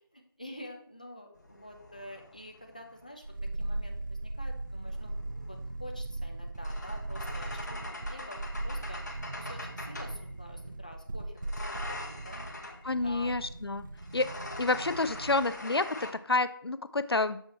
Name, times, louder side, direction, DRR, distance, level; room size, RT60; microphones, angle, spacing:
voice 1, 0.0-5.2 5.5-12.4 13.0-13.4 14.7-14.8, left 1 dB, 20° left, 3 dB, 0.4 m, -48 dB
sound 1, 1.3-3.5 4.7-10.2 11.4-12.9 14.0-16.1, left 2 dB, 45° left, 1.0 m, -43 dB
sound 2, 3.2-15.6 15.9-16.0, right 2 dB, 55° right, 0.5 m, -38 dB
voice 2, 12.8-13.8 14.1-14.3 14.6-17.4, left 3 dB, 90° left, 14 dB, 0.5 m, -29 dB
6.8 x 3.6 x 4.1 m, 0.64 s
figure-of-eight pair, 170°, 13 cm